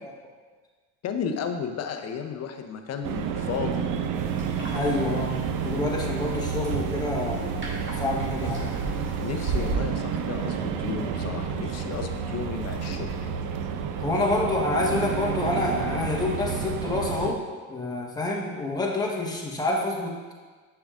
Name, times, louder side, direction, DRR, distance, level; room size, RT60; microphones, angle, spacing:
voice 1, 1.0-3.9 9.2-13.3, left 6 dB, 40° left, 5 dB, 0.7 m, -33 dB
sound 1, 3.0-17.3, right 6 dB, 55° right, 0.6 m, -30 dB
sound 2, 4.1-9.8, right 3 dB, 30° right, 1.8 m, -36 dB
voice 2, 4.7-5.4 5.6-7.5 8.0-8.7 14.0-17.4 17.7-20.3, left 2 dB, 10° left, -2 dB, 1.1 m, -27 dB
6.9 x 5.6 x 2.4 m, 1.4 s
supercardioid pair, 90°, 39 cm